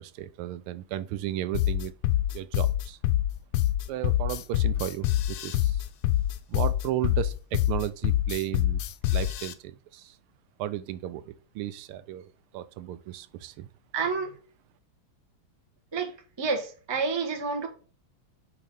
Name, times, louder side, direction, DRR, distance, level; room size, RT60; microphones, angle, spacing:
voice 1, 0.0-1.9 2.3-3.0 3.9-5.8 6.5-8.8 9.1-10.2 10.6-13.7, right 13 dB, 80° right, 1.5 m, -34 dB
sound 1, 1.5-9.5, left 13 dB, 85° left, 1.5 m, -25 dB
voice 2, 13.9-14.4 15.9-17.7, right 4 dB, 20° right, 0.7 m, -29 dB
5.3 x 4.8 x 5.3 m
omnidirectional pair, 2.4 m